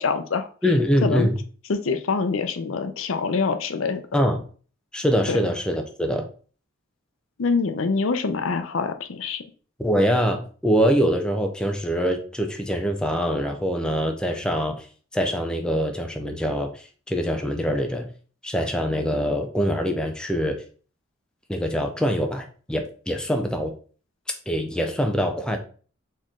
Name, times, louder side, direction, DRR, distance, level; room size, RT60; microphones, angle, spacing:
voice 1, 0.0-0.5 1.0-1.3 1.7-4.0 5.3-5.4 7.4-9.4, left 4 dB, 80° left, 8 dB, 0.6 m, -25 dB
voice 2, 0.6-1.4 4.1-4.4 4.9-6.2 9.8-14.8 15.1-16.7 17.1-18.1 18.4-20.6 21.5-23.7 24.5-25.6, equal, 5° left, 4 dB, 0.5 m, -24 dB
4.3 x 3.1 x 3.6 m, 0.41 s
head